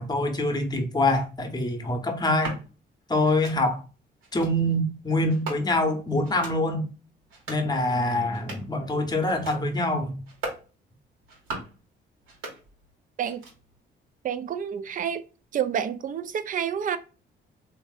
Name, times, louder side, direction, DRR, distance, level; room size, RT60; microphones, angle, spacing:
voice 1, 0.0-2.6 3.1-3.8 4.3-6.9 7.5-10.2, left 1 dB, 20° left, 0.8 m, -25 dB
sound 1, 2.2-2.6 3.2-3.6 4.2-4.5 5.3-5.9 6.2-6.6 7.2-7.7 8.2-8.8 9.2-9.6 10.2-10.7 11.2-11.8 12.2-12.9 13.2-13.8, right 3 dB, 90° right, 1.3 m, -39 dB
voice 2, 14.2-15.2 15.5-17.0, right 8 dB, 45° right, 0.4 m, -28 dB
3.2 x 2.6 x 2.3 m
cardioid pair, 90°, 20 cm